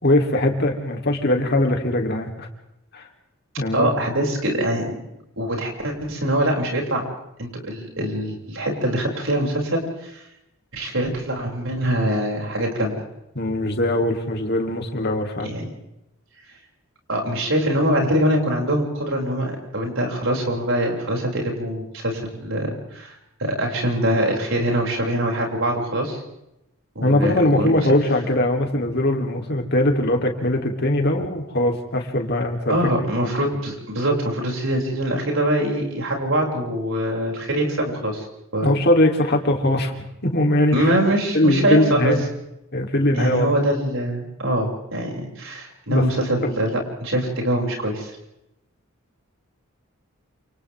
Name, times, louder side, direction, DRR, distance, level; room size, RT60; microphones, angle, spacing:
voice 1, 0.0-2.5 2.9-3.0 3.6-3.9 13.4-15.5 27.0-32.8 38.6-39.9 40.2-40.9 41.3-42.2 42.7-43.5 45.9-46.0 46.4-46.6, left 1 dB, 50° left, 2 dB, 3.5 m, -21 dB
voice 2, 3.7-4.9 5.4-7.0 7.4-10.2 10.7-13.0 15.4-15.7 17.1-23.1 23.4-26.2 27.0-27.8 32.7-38.3 38.5-38.8 40.7-42.1 43.2-48.1, right 1 dB, 65° right, 0 dB, 7.0 m, -23 dB
29.0 x 29.0 x 3.7 m, 0.86 s
head